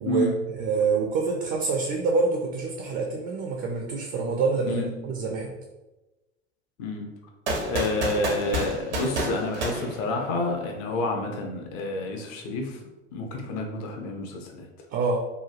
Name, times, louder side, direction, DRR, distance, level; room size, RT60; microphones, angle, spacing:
voice 1, 0.0-5.5 14.9-15.2, right 4 dB, 35° right, 1 dB, 0.4 m, -26 dB
sound 1, 7.5-10.6, right 1 dB, 80° right, 0.7 m, -30 dB
voice 2, 7.6-12.8 13.1-14.7, left 2 dB, 45° left, 3 dB, 0.6 m, -29 dB
3.1 x 2.2 x 2.4 m, 1.1 s
figure-of-eight pair, 75°, 33 cm